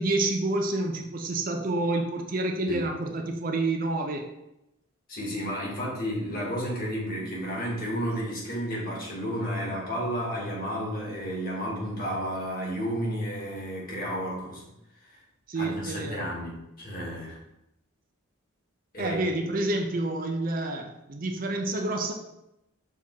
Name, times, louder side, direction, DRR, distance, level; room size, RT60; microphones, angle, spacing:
voice 1, 0.0-4.2 15.5-16.2 19.0-22.1, right 2 dB, 40° right, 3 dB, 0.6 m, -28 dB
voice 2, 5.1-14.7 15.0-15.2 15.5-17.4 18.9-19.2, equal, 45° left, -5 dB, 2.2 m, -32 dB
6.0 x 3.6 x 4.6 m, 0.87 s
head